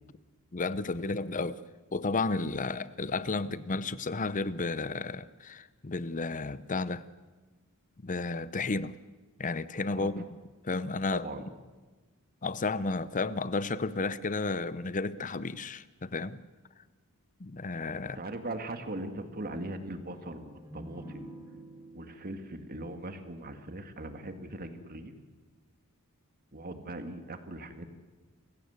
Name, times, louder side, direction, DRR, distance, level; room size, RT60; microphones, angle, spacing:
voice 1, 0.5-1.6 1.9-7.0 8.0-8.9 9.4-10.2 10.6-11.3 12.4-16.4 17.4-18.2, left 3 dB, 35° left, 16 dB, 0.7 m, -32 dB
voice 2, 11.1-11.4 18.1-21.3 21.9-25.1 26.5-27.9, right 1 dB, 40° right, 7 dB, 2.0 m, -40 dB
sound 1, 20.2-23.8, right 1 dB, 15° right, 5.9 m, -49 dB
29.0 x 16.0 x 8.1 m, 1.3 s
head